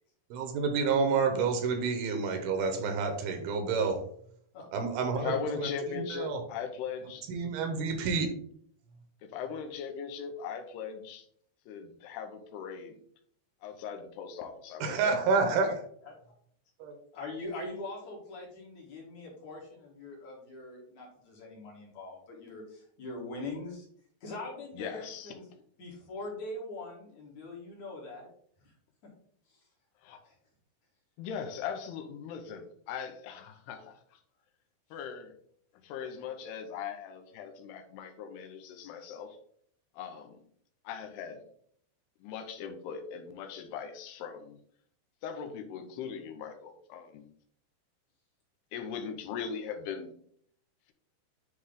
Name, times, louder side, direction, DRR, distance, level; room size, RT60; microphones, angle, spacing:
voice 1, 0.3-4.0 4.7-5.3 5.6-6.4 7.3-8.3 14.8-15.8 16.8-17.0, right 4 dB, 80° right, 6 dB, 2.7 m, -29 dB
voice 2, 4.5-5.2 16.1-16.2 17.1-23.9 24.2-25.4 25.8-28.3 28.6-28.7 30.2-30.3, left 2 dB, 55° left, -3 dB, 2.6 m, -42 dB
voice 3, 5.2-7.3 7.8-7.9 9.2-11.3 11.7-13.0 13.6-15.2 24.7-25.4 30.0-30.2 31.2-34.2 34.9-35.4 35.8-39.4 39.9-40.4 40.8-41.4 42.2-44.6 45.2-47.3 48.7-50.1, left 6 dB, 85° left, 6 dB, 2.8 m, -39 dB
9.6 x 3.2 x 3.7 m, 0.64 s
omnidirectional pair, 4.7 m